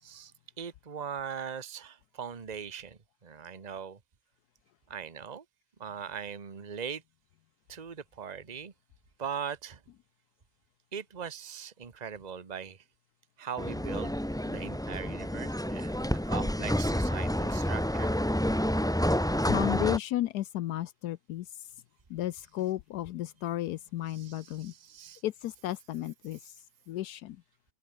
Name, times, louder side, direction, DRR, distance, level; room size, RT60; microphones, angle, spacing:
voice 1, 0.0-0.3 0.6-4.0 4.9-5.4 5.8-7.0 7.7-8.7 9.2-9.8 10.9-12.8 13.4-14.1 14.5-18.1 24.1-25.2, right 7 dB, 30° right, 1.3 m, -40 dB
sound 1, 13.6-20.0, equal, 5° left, 1.0 m, -29 dB
voice 2, 19.5-21.5 22.1-24.7 25.2-26.4 26.9-27.4, left 14 dB, 80° left, 1.2 m, -33 dB
omnidirectional pair, 1.7 m